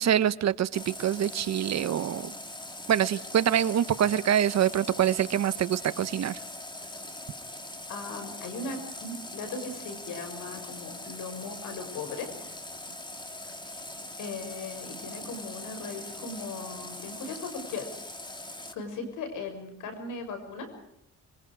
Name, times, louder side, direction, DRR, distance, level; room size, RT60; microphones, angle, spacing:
voice 1, 0.0-2.3 2.9-6.4, right 10 dB, 60° right, 15 dB, 1.2 m, -25 dB
Water tap faucet, 0.7-18.7, left 2 dB, 15° left, 2.8 m, -42 dB
voice 2, 7.9-12.3 14.2-17.9 18.7-20.7, left 3 dB, 85° left, 7 dB, 6.7 m, -38 dB
27.0 x 23.5 x 4.9 m, 0.77 s
cardioid pair, 90°, 30 cm